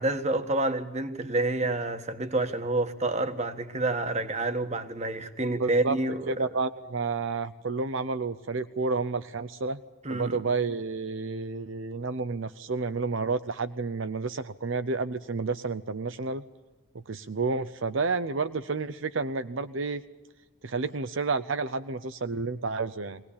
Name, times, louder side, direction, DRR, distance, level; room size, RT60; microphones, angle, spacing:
voice 1, 0.0-6.3 10.0-10.4, right 2 dB, 30° right, 1.4 m, -28 dB
voice 2, 5.6-6.0 6.3-9.8 10.1-16.4 17.1-20.0 20.6-23.2, right 4 dB, 65° right, 0.7 m, -30 dB
22.5 x 18.5 x 8.6 m
head